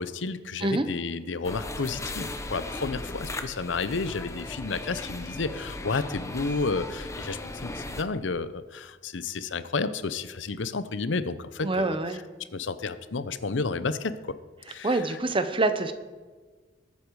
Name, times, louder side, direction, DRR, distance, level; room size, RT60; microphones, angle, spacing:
voice 1, 0.0-12.0 12.5-14.3 14.7-15.0, left 4 dB, 80° left, 13 dB, 0.7 m, -31 dB
sound 1, 1.4-8.0, left 2 dB, 15° left, 0.9 m, -37 dB
voice 2, 11.6-12.2 14.8-15.9, right 2 dB, 30° right, 9 dB, 0.9 m, -25 dB
20.0 x 8.5 x 4.8 m, 1.4 s
head